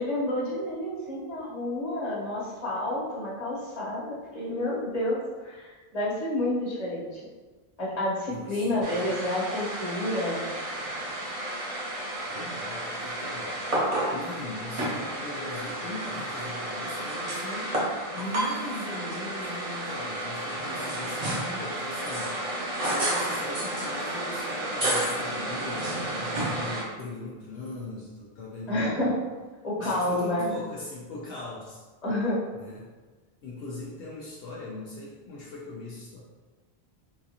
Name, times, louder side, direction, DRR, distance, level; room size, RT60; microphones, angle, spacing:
voice 1, 0.0-7.2 7.8-10.5 28.7-29.2 29.6-30.5 32.0-32.4, left 1 dB, 40° left, -7 dB, 1.0 m, -29 dB
voice 2, 8.3-9.1 12.3-13.6 14.1-17.8 18.1-22.3 22.6-29.1 29.8-31.8 32.5-32.9 33.4-36.2, left 2 dB, 75° left, -5 dB, 0.8 m, -39 dB
sound 1, 8.8-26.8, right 1 dB, 40° right, 0.7 m, -31 dB
3.9 x 2.4 x 2.8 m, 1.3 s
omnidirectional pair, 1.1 m